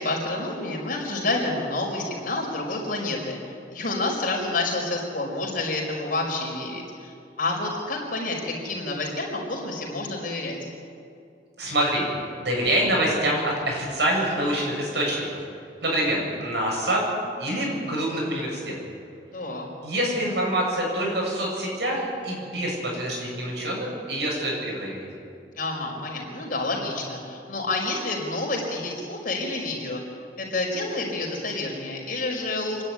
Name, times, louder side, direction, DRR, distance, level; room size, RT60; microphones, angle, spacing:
voice 1, 0.0-3.4 3.7-10.6 19.3-19.6 25.5-30.0 30.4-32.8, left 2 dB, 55° left, 0 dB, 5.1 m, -29 dB
voice 2, 11.6-12.0 12.4-15.4 15.8-17.1 17.4-18.7 19.8-25.1, right 1 dB, 75° right, -2 dB, 7.8 m, -26 dB
28.0 x 11.0 x 9.7 m, 2.5 s
head